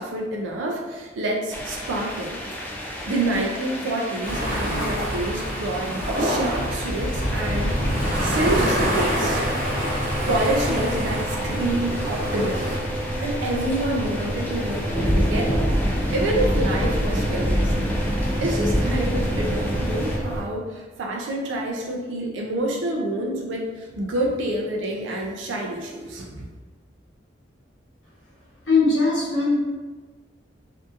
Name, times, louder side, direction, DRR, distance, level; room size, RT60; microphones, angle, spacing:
voice 1, 0.0-2.4 3.1-5.9 6.2-7.8 8.2-9.4 10.3-12.8 13.2-15.7 16.1-17.9 18.4-26.5, right 1 dB, 80° right, -1 dB, 0.4 m, -27 dB
sound 1, 1.5-20.2, equal, 10° left, 0.4 m, -29 dB
sound 2, 4.2-12.8, equal, 45° right, 0.7 m, -26 dB
sound 3, 7.1-20.4, equal, 10° right, 0.7 m, -30 dB
voice 2, 28.6-29.6, left 3 dB, 85° left, -7 dB, 1.1 m, -19 dB
2.6 x 2.5 x 2.4 m, 1.3 s
head